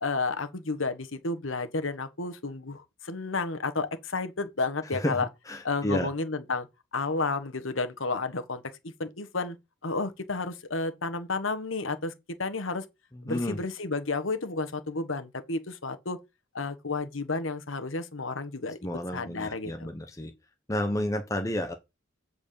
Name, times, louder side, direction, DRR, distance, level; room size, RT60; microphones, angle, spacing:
voice 1, 0.0-5.3 5.6-6.7 6.9-8.6 9.0-9.5 9.8-12.1 12.4-12.8 13.2-16.2 16.5-18.8 19.1-19.9, left 3 dB, 70° left, 1.4 m, -31 dB
voice 2, 5.5-6.1 13.1-13.6 18.8-20.3 20.7-21.7, left 1 dB, 15° left, 1.0 m, -31 dB
8.0 x 4.7 x 6.9 m
head